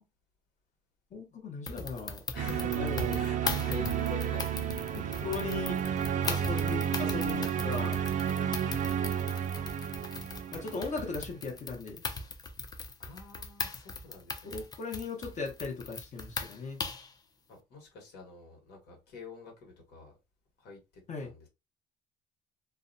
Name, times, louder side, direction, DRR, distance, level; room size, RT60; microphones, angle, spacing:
voice 1, 1.1-2.2 2.7-3.1 4.9-5.8 6.2-8.0 10.5-12.0 14.4-16.8 21.1-21.3, left 4 dB, 45° left, 0.8 m, -38 dB
Computer Typing, 1.7-17.1, left 4 dB, 25° left, 0.4 m, -39 dB
voice 2, 2.3-4.7 5.2-5.8 8.3-8.6 13.0-14.6 17.5-20.1 20.6-20.8 21.2-21.5, left 3 dB, 75° left, 1.2 m, -46 dB
sound 1, 2.4-11.2, right 9 dB, 50° right, 0.4 m, -32 dB
2.5 x 2.1 x 2.6 m
cardioid pair, 110°, 17 cm